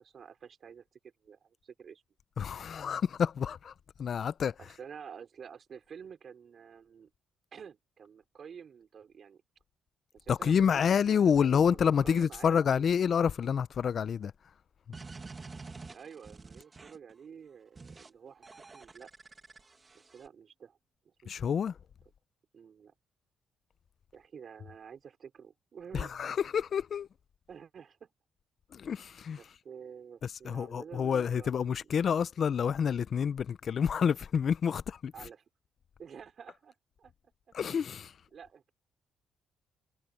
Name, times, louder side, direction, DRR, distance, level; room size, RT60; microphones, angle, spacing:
voice 1, 0.0-2.0 4.6-7.1 7.5-9.4 10.1-12.8 15.9-18.5 18.7-19.1 19.9-20.8 21.0-21.6 22.5-22.9 24.1-26.3 27.5-28.1 29.4-32.2 35.1-35.4 36.0-37.1 38.3-38.7, right 7 dB, 50° right, 4.8 m, -50 dB
voice 2, 2.4-3.7 4.0-4.5 10.3-14.3 21.3-21.7 25.9-27.1 28.7-29.4 30.4-35.1 37.5-38.1, left 7 dB, 55° left, 0.6 m, -28 dB
sound 1, 14.9-17.1 17.8-18.1 18.4-20.3, right 4 dB, 30° right, 2.0 m, -48 dB
cardioid pair, 90°, 0 cm